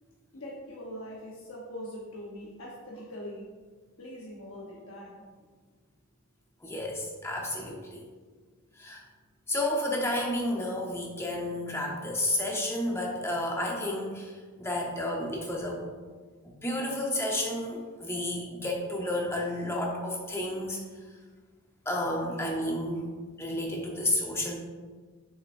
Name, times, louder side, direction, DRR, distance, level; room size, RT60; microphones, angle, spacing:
voice 1, 0.3-3.5 4.0-5.2 22.3-22.4, equal, 65° left, -5 dB, 1.0 m, -42 dB
voice 2, 6.6-8.0 8.8-9.1 9.5-15.8 16.4-20.8 21.9-23.0 23.4-24.6, left 1 dB, 10° left, -1 dB, 0.9 m, -31 dB
6.7 x 6.3 x 2.6 m, 1.5 s
head